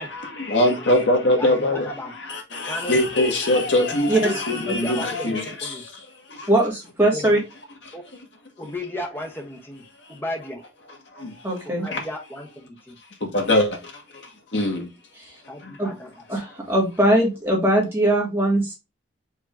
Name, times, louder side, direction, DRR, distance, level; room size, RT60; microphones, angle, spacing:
voice 1, 0.0-6.0 6.3-6.5 7.9-8.0 10.0-10.2 11.1-11.5 11.9-12.0 13.2-14.9 15.6-15.7, left 1 dB, 70° left, 1.3 m, -23 dB
voice 2, 1.4-2.1 2.7-3.0 4.2-5.8 7.1-7.4 7.9-8.0 8.6-10.7 11.7-13.0 15.5-16.1, left 1 dB, 10° left, 0.9 m, -34 dB
voice 3, 4.1-4.4 4.7-4.8 6.5-7.4 11.4-11.9 15.2-15.3 15.8-15.9 16.3-18.7, right 1 dB, 10° right, 1.4 m, -21 dB
4.7 x 2.7 x 3.5 m
head